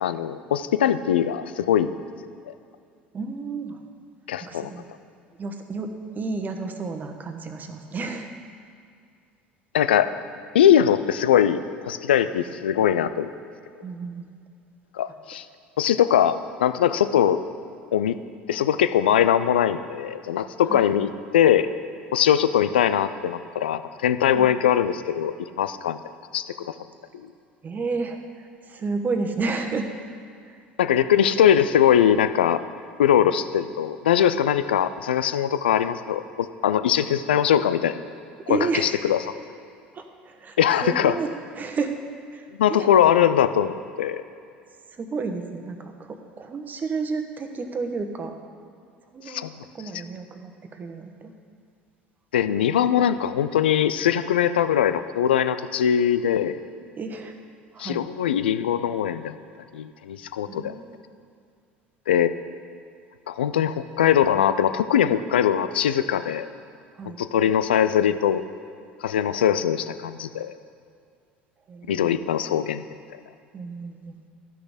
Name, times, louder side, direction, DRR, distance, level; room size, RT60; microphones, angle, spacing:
voice 1, 0.0-1.9 4.3-4.7 9.7-10.1 10.5-13.3 14.9-15.4 15.8-17.4 17.9-18.2 18.5-21.7 22.1-26.0 26.3-26.7 30.8-32.6 33.0-38.0 38.5-39.2 40.6-41.2 42.6-44.2 49.3-49.5 52.3-56.6 57.8-59.4 59.7-60.7 62.1-62.3 63.3-66.5 67.2-68.4 69.0-70.5 71.9-72.8, left 9 dB, 80° left, 12 dB, 0.4 m, -21 dB
voice 2, 3.1-3.8 4.4-4.9 5.4-8.3 13.8-14.3 20.7-20.8 24.3-24.5 27.6-29.9 30.4-30.6 38.5-39.0 39.9-41.9 42.3-42.9 44.9-48.4 49.1-49.5 49.7-51.3 57.0-57.4 57.7-58.0 60.5-61.0 67.0-67.2 71.7-72.0 73.5-74.1, right 4 dB, 35° right, 5 dB, 1.1 m, -31 dB
12.5 x 6.1 x 5.0 m, 2.3 s
hypercardioid pair, 70°, 5 cm